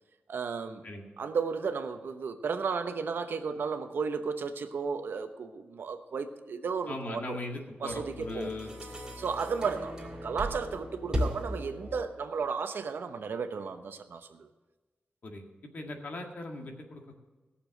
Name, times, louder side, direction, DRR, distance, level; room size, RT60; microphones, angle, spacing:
voice 1, 0.3-0.8 1.2-7.4 7.8-8.5 9.2-14.5, right 5 dB, 80° right, 8 dB, 0.9 m, -34 dB
voice 2, 6.9-8.7 15.2-15.5 15.7-17.2, left 2 dB, 55° left, 2 dB, 1.8 m, -39 dB
sound 1, 7.9-12.3, equal, 20° right, 2.6 m, -37 dB
17.0 x 6.9 x 6.3 m, 1.2 s
wide cardioid pair, 140°, 4 cm